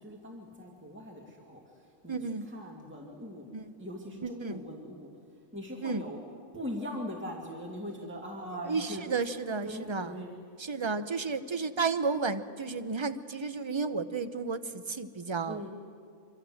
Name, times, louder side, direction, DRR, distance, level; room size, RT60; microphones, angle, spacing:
voice 1, 0.0-1.6 2.0-2.2 2.5-3.5 3.8-5.1 5.5-6.2 6.5-9.0 9.6-10.4 15.5-15.7, equal, 10° right, -1 dB, 2.4 m, -40 dB
voice 2, 2.1-2.5 3.5-3.7 4.2-4.6 5.8-6.0 8.6-10.1 10.6-15.7, right 4 dB, 25° right, 11 dB, 0.8 m, -32 dB
26.0 x 25.5 x 7.9 m, 2.3 s
omnidirectional pair, 1.5 m